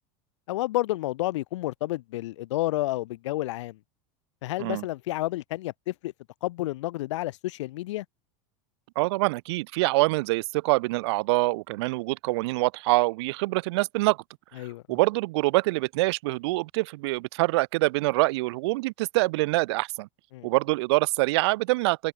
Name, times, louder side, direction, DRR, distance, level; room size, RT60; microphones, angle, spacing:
voice 1, 0.5-3.8 4.4-6.1 6.4-8.0 14.6-14.8 20.3-20.5, left 17 dB, 85° left, 5.0 m, -30 dB
voice 2, 9.0-14.2 14.9-20.1 20.4-22.1, right 22 dB, 65° right, 5.7 m, -25 dB
supercardioid pair, 170°, 15 cm